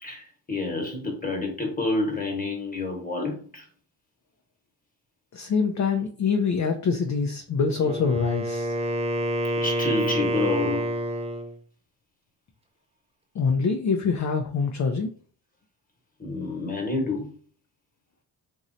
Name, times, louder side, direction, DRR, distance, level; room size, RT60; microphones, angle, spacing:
voice 1, 0.0-3.6 9.6-10.9 16.2-17.3, left 2 dB, 20° left, 2 dB, 1.2 m, -28 dB
voice 2, 5.3-8.7 13.3-15.1, left 5 dB, 40° left, 3 dB, 0.5 m, -25 dB
Wind instrument woodwind instrument, 7.7-11.5, equal, 15° right, 0.5 m, -28 dB
3.1 x 2.6 x 2.6 m, 0.42 s
supercardioid pair, 70°, 46 cm